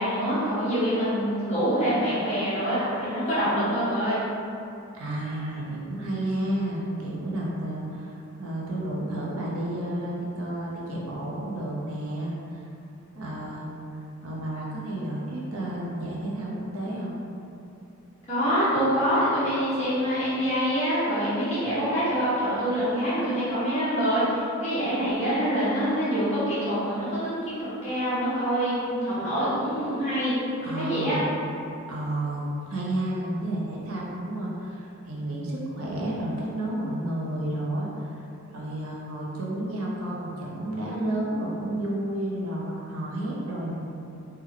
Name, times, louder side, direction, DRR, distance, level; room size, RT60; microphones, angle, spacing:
voice 1, 0.0-4.2 18.3-30.3 30.6-31.2, equal, 30° left, -12 dB, 1.3 m, -25 dB
voice 2, 4.9-12.7 13.1-13.7 14.2-17.2 30.6-31.2 31.9-38.2 38.5-43.8, right 1 dB, 70° right, -4 dB, 0.7 m, -31 dB
3.4 x 2.2 x 3.6 m, 2.8 s
head